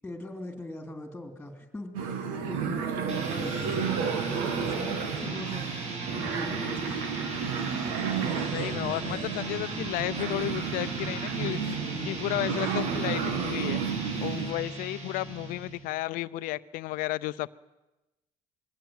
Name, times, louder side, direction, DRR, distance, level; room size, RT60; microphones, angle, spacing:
voice 1, 0.0-6.9 11.9-12.2 14.2-14.5, left 1 dB, 5° left, 6 dB, 3.1 m, -41 dB
sound 1, 1.9-14.5, right 7 dB, 85° right, 2.3 m, -32 dB
sound 2, 3.1-15.9, right 2 dB, 50° right, 6.9 m, -37 dB
voice 2, 8.5-11.6 12.0-13.8 14.2-17.5, left 18 dB, 75° left, 16 dB, 0.7 m, -33 dB
21.5 x 16.5 x 9.0 m, 1.0 s
cardioid pair, 110°, 14 cm